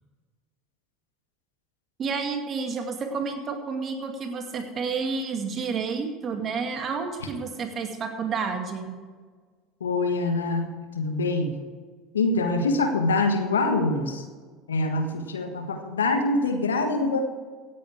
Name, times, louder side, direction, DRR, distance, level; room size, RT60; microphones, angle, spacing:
voice 1, 2.0-9.0, right 5 dB, 40° right, 4 dB, 2.3 m, -30 dB
voice 2, 9.8-11.5 12.1-14.2 14.7-17.2, left 3 dB, 85° left, 6 dB, 1.5 m, -25 dB
16.5 x 9.4 x 4.8 m, 1.5 s
hypercardioid pair, 70°, 0 cm